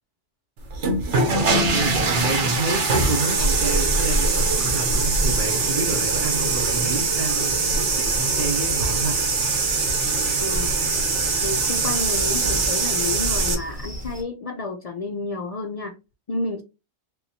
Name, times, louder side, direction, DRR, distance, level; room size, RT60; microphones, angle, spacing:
sound 1, 0.7-13.5, right 4 dB, 70° right, 1.2 m, -22 dB
voice 1, 1.7-9.2, right 2 dB, 50° right, 0.8 m, -29 dB
sound 2, 3.3-14.2, right 1 dB, 5° right, 0.8 m, -31 dB
voice 2, 10.4-10.7 11.4-15.9 16.3-16.6, left 3 dB, 70° left, 0.3 m, -30 dB
3.5 x 2.9 x 2.7 m
omnidirectional pair, 1.3 m